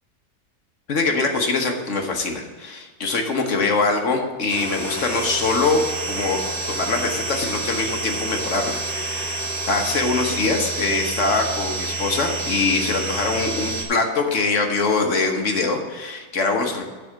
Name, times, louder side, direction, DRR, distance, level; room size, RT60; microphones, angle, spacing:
voice 1, 0.9-6.4 6.7-16.8, left 3 dB, 55° left, 3 dB, 1.4 m, -23 dB
sound 1, 4.5-13.8, right 2 dB, 30° left, 1.7 m, -28 dB
10.0 x 4.2 x 7.4 m, 1.4 s
omnidirectional pair, 1.6 m